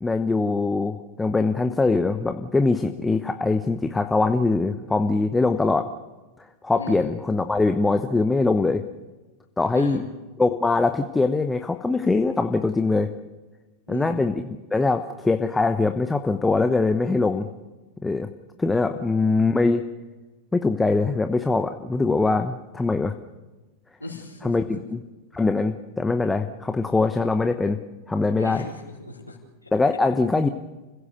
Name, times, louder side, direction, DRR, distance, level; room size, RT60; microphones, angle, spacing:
voice 1, 0.0-5.9 6.6-8.8 9.6-10.0 10.4-13.1 13.9-17.5 18.0-18.3 18.6-19.8 20.5-23.1 24.4-25.0 25.3-27.8 28.1-28.6 29.7-30.5, left 3 dB, 10° left, 8 dB, 1.0 m, -22 dB
voice 2, 6.8-7.1 9.7-10.1 13.9-14.2 18.9-19.0 24.0-24.8 28.4-29.7, left 2 dB, 85° left, -4 dB, 4.3 m, -38 dB
30.0 x 16.0 x 6.9 m, 1.2 s
figure-of-eight pair, 90°, 0 cm